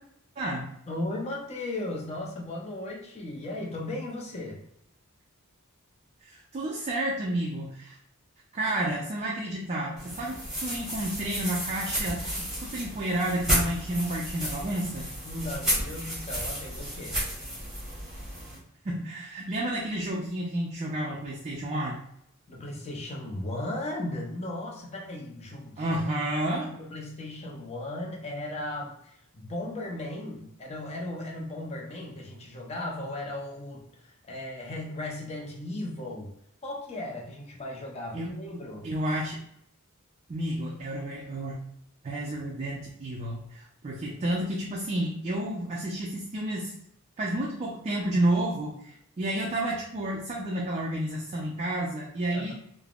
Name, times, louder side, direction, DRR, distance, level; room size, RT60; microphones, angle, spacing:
voice 1, 0.4-0.7 6.2-8.0 8.5-15.1 18.8-22.0 25.8-26.7 38.1-38.5 38.8-39.4 40.3-41.6 42.0-46.7 47.2-52.5, right 1 dB, 30° right, -2 dB, 0.3 m, -31 dB
voice 2, 0.9-4.6 15.3-17.1 22.5-26.0 26.7-36.3 36.6-38.9 52.3-52.5, left 1 dB, 30° left, -1 dB, 0.6 m, -36 dB
sound 1, 10.0-18.6, equal, 5° right, 0.9 m, -32 dB
3.3 x 2.0 x 2.3 m, 0.73 s
head